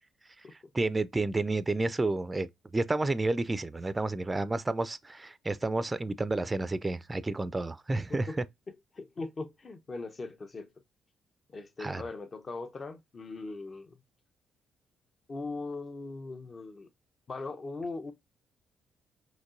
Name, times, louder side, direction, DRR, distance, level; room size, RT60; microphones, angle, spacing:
voice 1, 0.7-2.5 2.7-8.3 11.8-12.0, right 2 dB, 25° right, 0.4 m, -30 dB
voice 2, 8.9-10.7 11.5-14.0 15.3-16.9 17.3-18.1, left 3 dB, 40° left, 0.8 m, -39 dB
5.1 x 3.1 x 2.5 m
hypercardioid pair, 50°, 0 cm